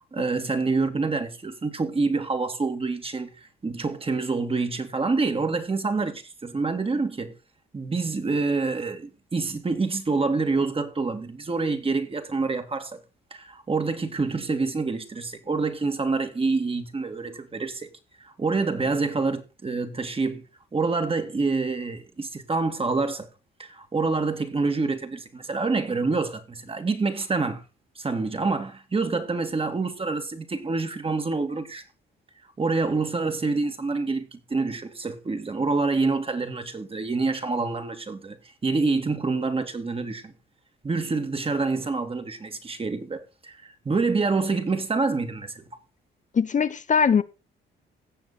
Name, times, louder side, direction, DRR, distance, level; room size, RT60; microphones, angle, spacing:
voice 1, 0.1-7.3 7.7-13.0 13.3-17.9 18.2-20.4 20.7-23.3 23.6-27.6 28.0-31.8 32.6-40.3 40.8-45.8, right 3 dB, 30° right, 2.3 m, -27 dB
voice 2, 46.3-47.2, left 6 dB, 40° left, 0.9 m, -21 dB
17.0 x 7.2 x 4.2 m
cardioid pair, 90°, 20 cm